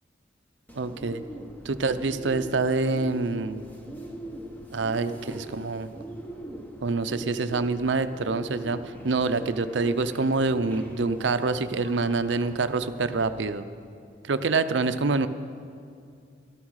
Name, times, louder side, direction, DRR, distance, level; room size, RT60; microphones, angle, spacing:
Bird, 0.7-13.4, right 1 dB, 10° left, 1.1 m, -41 dB
voice 1, 0.7-1.2 1.6-3.6 4.7-5.9 6.8-13.7 14.3-15.3, right 3 dB, 70° right, 11 dB, 0.6 m, -26 dB
13.5 x 12.0 x 6.4 m, 2.4 s
head